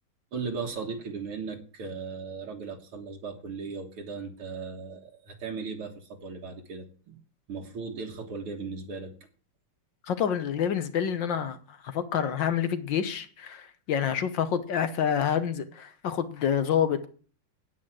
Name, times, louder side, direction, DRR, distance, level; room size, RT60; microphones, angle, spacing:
voice 1, 0.3-7.2 7.5-9.1, right 4 dB, 85° right, 1 dB, 2.4 m, -37 dB
voice 2, 10.1-17.1, left 8 dB, 65° left, 11 dB, 1.6 m, -28 dB
9.3 x 8.9 x 7.5 m, 0.42 s
omnidirectional pair, 2.3 m